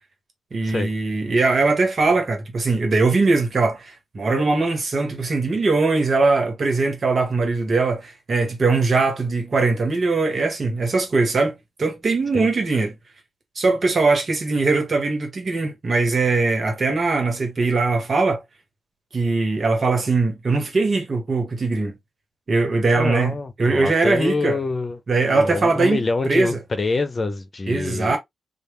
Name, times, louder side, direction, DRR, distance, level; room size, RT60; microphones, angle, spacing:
voice 1, 0.5-12.9 13.5-18.4 19.1-21.9 22.5-24.6 25.1-26.6 27.7-28.2, right 3 dB, 55° right, 1.5 m, -21 dB
voice 2, 23.0-25.0 25.3-28.2, left 3 dB, 40° left, 0.7 m, -26 dB
3.3 x 2.5 x 3.1 m
supercardioid pair, 45°, 0 cm